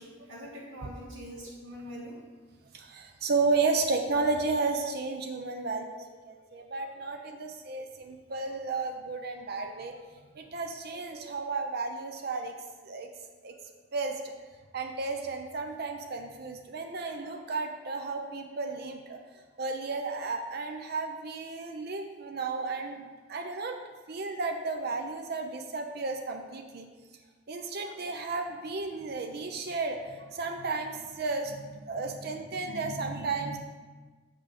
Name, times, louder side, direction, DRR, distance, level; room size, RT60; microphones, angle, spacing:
voice 1, 0.0-2.2, equal, 75° right, -5 dB, 2.5 m, -43 dB
voice 2, 2.7-9.9 10.3-12.5 12.8-13.1 13.4-13.5 13.9-14.3 14.7-19.2 19.6-23.8 24.1-26.9 27.5-33.6, right 3 dB, 55° right, 4 dB, 0.6 m, -33 dB
6.8 x 5.4 x 5.2 m, 1.4 s
head